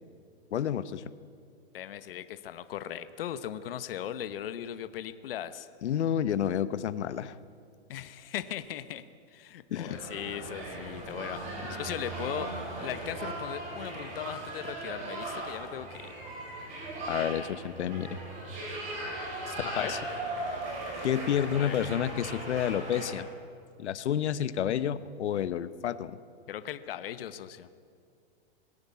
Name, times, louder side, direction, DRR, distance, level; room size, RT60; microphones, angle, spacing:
voice 1, 0.5-1.0 5.8-7.4 9.7-10.1 17.1-18.2 19.5-20.0 21.0-23.3 23.8-26.2, left 9 dB, 80° left, 14 dB, 1.1 m, -30 dB
voice 2, 1.7-5.7 7.9-12.5 12.8-16.1 19.6-19.9 21.3-21.7 26.5-27.7, left 10 dB, 55° left, 12 dB, 1.0 m, -38 dB
sound 1, 9.9-23.1, right 2 dB, 20° right, 3.9 m, -38 dB
21.0 x 16.5 x 8.4 m, 2.3 s
supercardioid pair, 175°, 33 cm